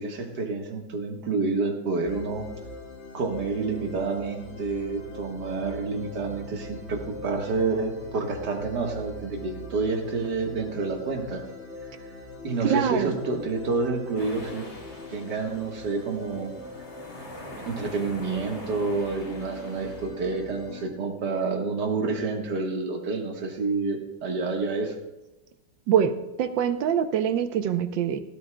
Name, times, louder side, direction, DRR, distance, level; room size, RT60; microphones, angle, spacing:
voice 1, 0.0-2.5 3.1-11.5 12.4-14.7 15.1-16.5 17.7-24.9, right 3 dB, 60° right, 2 dB, 2.0 m, -29 dB
sound 1, 2.0-20.9, left 1 dB, 40° left, 1.4 m, -42 dB
voice 2, 12.6-13.1 25.9-28.2, right 8 dB, 75° right, 10 dB, 1.5 m, -24 dB
sound 2, 14.2-20.1, left 1 dB, 85° left, 3.9 m, -44 dB
17.5 x 12.5 x 2.3 m, 1.0 s
omnidirectional pair, 2.1 m